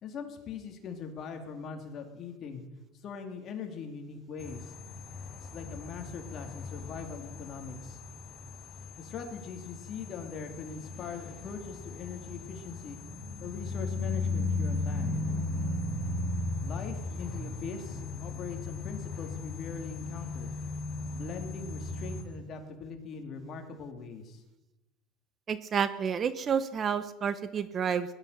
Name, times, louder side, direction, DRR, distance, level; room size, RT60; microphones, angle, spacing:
voice 1, 0.0-2.6 3.0-4.7 5.4-8.0 9.0-13.0 13.4-15.2 16.6-20.5 21.1-24.4, left 5 dB, 35° left, 4 dB, 2.9 m, -41 dB
sound 1, 4.4-22.2, left 3 dB, 5° left, 4.0 m, -36 dB
voice 2, 25.5-28.1, right 7 dB, 30° right, 14 dB, 0.8 m, -30 dB
19.0 x 11.5 x 6.8 m, 1.0 s
supercardioid pair, 135°, 0 cm